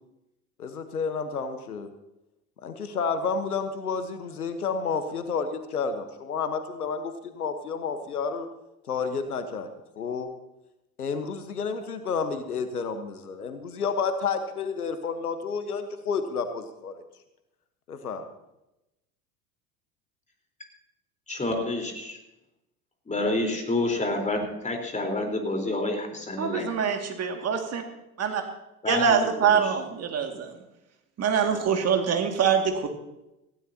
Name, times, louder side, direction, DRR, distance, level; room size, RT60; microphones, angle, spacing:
voice 1, 0.6-1.9 2.6-8.5 8.9-9.7 10.0-10.3 11.0-16.9 17.9-18.2, left 5 dB, 80° left, 9 dB, 1.3 m, -30 dB
voice 2, 21.3-22.2 23.1-26.6 28.8-29.7, left 2 dB, 15° left, 3 dB, 4.1 m, -28 dB
voice 3, 26.4-27.8 28.2-28.4 28.9-30.5 31.2-32.9, right 7 dB, 35° right, 4 dB, 2.2 m, -24 dB
18.5 x 16.0 x 2.9 m, 0.92 s
figure-of-eight pair, 70°, 44 cm